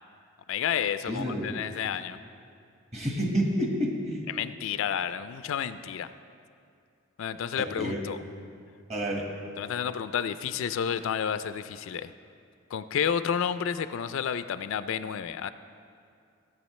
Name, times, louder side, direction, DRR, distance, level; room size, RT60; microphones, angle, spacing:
voice 1, 0.5-2.2 4.3-6.1 7.2-8.2 9.6-12.1 12.7-15.5, left 8 dB, 70° left, 12 dB, 0.3 m, -30 dB
voice 2, 1.1-1.4 2.9-4.3 7.6-8.0 8.9-9.2, equal, 30° right, -1 dB, 1.6 m, -29 dB
16.0 x 8.5 x 3.2 m, 2.4 s
head